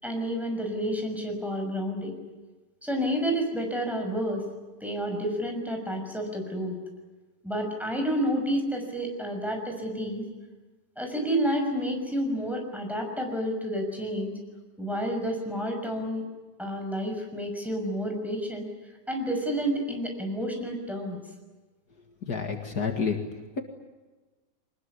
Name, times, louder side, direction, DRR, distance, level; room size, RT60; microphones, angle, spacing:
voice 1, 0.0-2.2 2.8-4.4 4.8-6.8 7.4-10.2 11.0-14.4 14.8-16.3 16.6-18.7 19.1-21.2, equal, ahead, 2 dB, 6.1 m, -30 dB
voice 2, 22.2-23.2, left 6 dB, 65° left, 4 dB, 2.5 m, -29 dB
25.0 x 20.5 x 9.9 m, 1.2 s
omnidirectional pair, 1.8 m